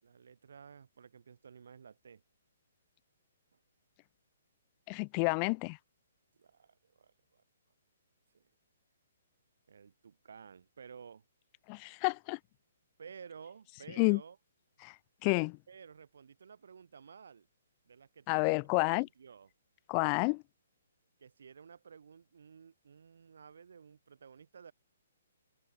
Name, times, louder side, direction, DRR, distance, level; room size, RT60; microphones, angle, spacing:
voice 1, 0.0-2.2 3.5-3.6 6.4-7.4 8.3-8.5 9.7-11.2 13.0-14.4 15.7-17.5 17.9-18.6 18.9-19.5 21.2-24.7, right 6 dB, 75° right, 4.8 m, -53 dB
voice 2, 4.9-5.8 11.7-12.4 14.0-14.2 14.8-14.9 15.2-15.6 18.3-19.1 19.9-20.4, left 40 dB or more, 30° left, 0.3 m, -29 dB
open air
hypercardioid pair, 150°, 0 cm